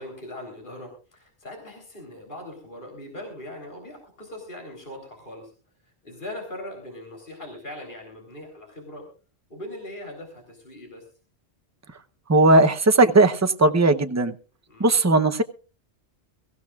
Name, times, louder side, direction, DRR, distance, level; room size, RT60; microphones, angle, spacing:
voice 1, 0.0-5.5 5.8-9.1 9.5-11.1 14.7-14.9, left 1 dB, 45° left, 1 dB, 3.9 m, -40 dB
voice 2, 12.3-14.3 14.8-15.4, right 2 dB, 15° right, 8 dB, 0.7 m, -17 dB
23.5 x 15.0 x 2.4 m, 0.35 s
omnidirectional pair, 1.2 m